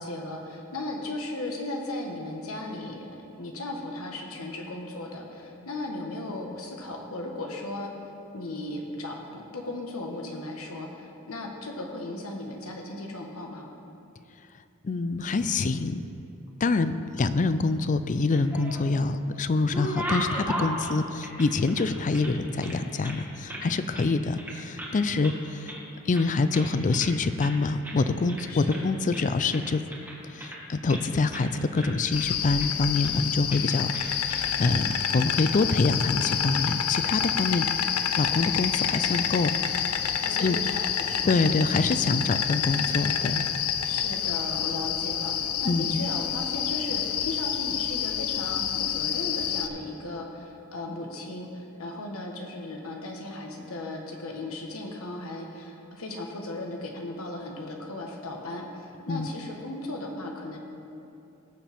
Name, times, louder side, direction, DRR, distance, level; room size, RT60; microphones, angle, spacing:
voice 1, 0.0-7.9 8.3-13.7 25.1-25.3 28.5-28.9 40.2-41.6 43.8-60.6, left 2 dB, 70° left, 1 dB, 1.3 m, -36 dB
voice 2, 14.8-16.0 16.6-25.8 26.1-29.8 30.3-37.7 38.2-39.8 40.4-40.6 41.2-43.4 45.6-46.1 59.1-59.3, left 3 dB, 35° left, 12 dB, 0.4 m, -26 dB
sound 1, 18.2-19.0 19.4-22.3 22.6-23.7 23.9-24.1 24.4-25.0 25.2-25.8 26.1-27.1 27.4-27.6 27.8-28.0 28.3-28.9 29.1-31.0 31.3-31.5 31.7-32.7 33.0-33.2 33.5-33.6 33.9-34.5 34.9-35.0 35.9-36.3, right 1 dB, 10° right, 1.8 m, -36 dB
Insect, 32.1-49.7, left 8 dB, 90° left, 0.6 m, -28 dB
18.5 x 7.4 x 3.5 m, 2.8 s
head